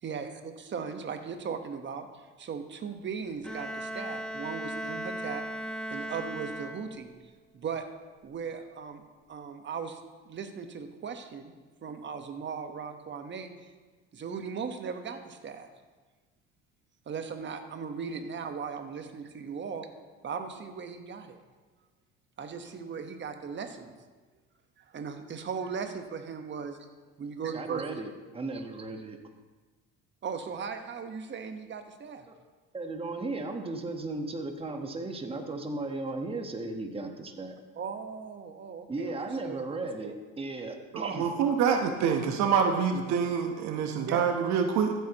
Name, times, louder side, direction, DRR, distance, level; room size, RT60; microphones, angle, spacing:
voice 1, 0.0-2.1 2.4-5.4 5.9-7.1 7.5-7.9 8.2-9.0 9.3-10.0 10.2-11.5 11.8-13.5 14.1-15.7 17.1-19.9 20.2-21.4 22.4-23.9 24.8-26.8 27.2-27.9 30.2-32.2 37.8-39.2 39.4-39.7 41.0-41.2 44.0-44.2, right 6 dB, 40° right, 7 dB, 1.2 m, -37 dB
Bowed string instrument, 3.4-7.2, equal, 5° left, 1.0 m, -37 dB
voice 2, 27.5-29.2 32.7-37.6 38.9-41.3, right 2 dB, 20° right, 4 dB, 1.3 m, -36 dB
voice 3, 41.2-44.9, right 6 dB, 70° right, 5 dB, 1.1 m, -26 dB
14.5 x 8.2 x 3.0 m, 1.3 s
supercardioid pair, 85°, 29 cm